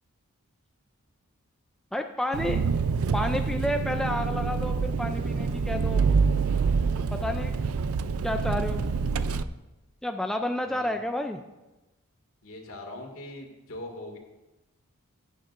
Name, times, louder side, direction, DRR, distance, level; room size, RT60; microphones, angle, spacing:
voice 1, 1.9-2.6 3.1-6.1 7.1-7.7 8.2-8.8 10.0-11.4, left 1 dB, ahead, 4 dB, 0.3 m, -30 dB
Engine, 2.3-9.4, right 5 dB, 70° right, 0.4 m, -26 dB
voice 2, 10.6-11.0 12.4-14.2, left 1 dB, 65° left, 1 dB, 2.2 m, -41 dB
16.0 x 9.2 x 2.6 m, 1.1 s
head